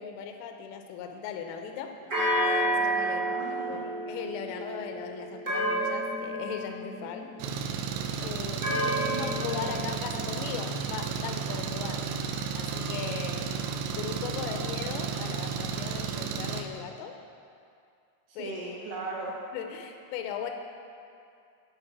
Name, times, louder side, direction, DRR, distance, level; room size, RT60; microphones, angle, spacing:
voice 1, 0.0-1.9 2.4-7.3 8.2-8.9 9.2-12.1 12.5-13.5 14.0-17.2 18.4-18.6 19.5-20.5, left 7 dB, 90° left, 5 dB, 3.2 m, -38 dB
sound 1, 2.1-7.8 8.6-9.8, right 1 dB, 50° right, 1.2 m, -30 dB
voice 2, 3.0-3.9 8.7-9.2 18.3-19.4, right 3 dB, 75° right, -5 dB, 2.6 m, -38 dB
Engine, 7.4-16.6, right 6 dB, 90° right, 2.5 m, -33 dB
10.5 x 4.7 x 5.9 m, 2.4 s
omnidirectional pair, 5.7 m